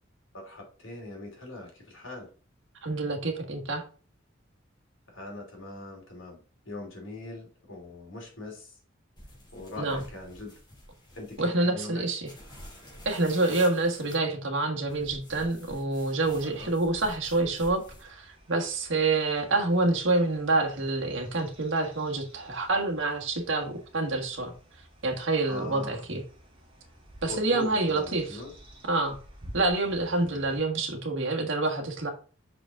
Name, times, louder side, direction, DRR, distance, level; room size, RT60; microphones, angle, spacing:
voice 1, 0.3-2.3 5.1-8.7 9.5-10.5 11.1-12.1 16.4-16.7 25.4-26.0 27.3-28.5, left 2 dB, 75° left, 0 dB, 2.7 m, -41 dB
voice 2, 2.8-3.8 9.8-10.0 11.4-12.2 13.0-24.5 25.0-26.2 27.2-28.2 28.9-29.1 29.5-32.1, right 2 dB, 65° right, 2 dB, 1.6 m, -27 dB
sound 1, 9.2-11.5 12.2-14.2 14.9-18.1, left 1 dB, 20° left, 2.8 m, -48 dB
sound 2, 17.2-30.6, equal, 25° right, 2.1 m, -52 dB
5.9 x 5.0 x 3.7 m, 0.39 s
head